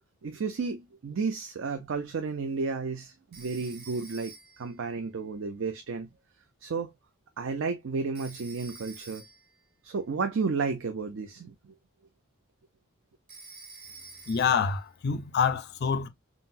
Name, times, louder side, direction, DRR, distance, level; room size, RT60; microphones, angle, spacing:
voice 1, 0.2-6.1 6.6-6.9 7.4-9.2 9.8-11.5, right 4 dB, 65° right, 0.4 m, -32 dB
Telephone, 3.3-4.8 8.2-9.6 13.3-14.7, right 4 dB, 50° right, 0.9 m, -48 dB
voice 2, 14.3-16.1, left 6 dB, 50° left, 0.4 m, -26 dB
3.8 x 2.0 x 2.5 m
head